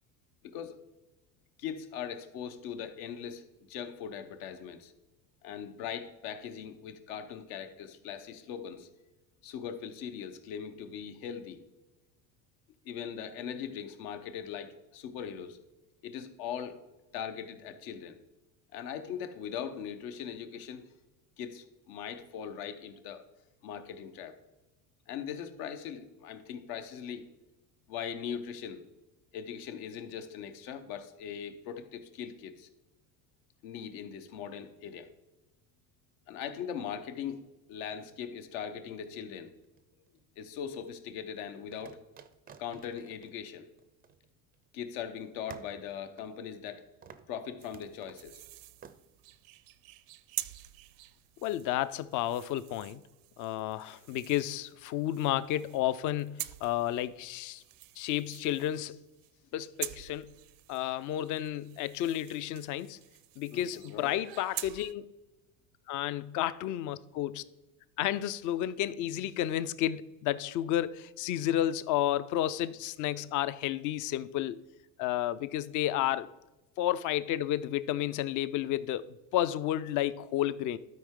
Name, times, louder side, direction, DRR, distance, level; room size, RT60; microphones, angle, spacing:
voice 1, 0.4-0.8 1.6-4.9 5.4-8.9 9.4-11.6 12.8-15.6 16.0-16.8 17.1-18.2 18.7-20.9 21.4-23.3 23.6-24.4 25.1-27.3 27.9-28.8 29.3-32.7 33.6-35.1 36.3-37.4 37.7-39.5 40.4-42.0 42.6-43.7 44.7-46.8 47.3-48.4 63.5-64.2, left 8 dB, 75° left, 1.0 m, -40 dB
sound 1, 39.6-40.5 41.7-44.7 45.0-45.1 45.5-46.8 47.0-47.4 47.7-48.3 48.8-49.0, right 7 dB, 20° right, 0.4 m, -53 dB
sound 2, 47.6-64.9, right 17 dB, 65° right, 0.6 m, -46 dB
voice 2, 51.4-53.0 53.4-57.6 58.0-59.0 59.5-60.3 60.7-63.0 63.4-65.1 65.9-67.4 68.0-74.6 75.0-76.3 76.8-80.8, left 12 dB, 45° left, 0.4 m, -31 dB
12.5 x 4.6 x 3.7 m
supercardioid pair, 100°, 47 cm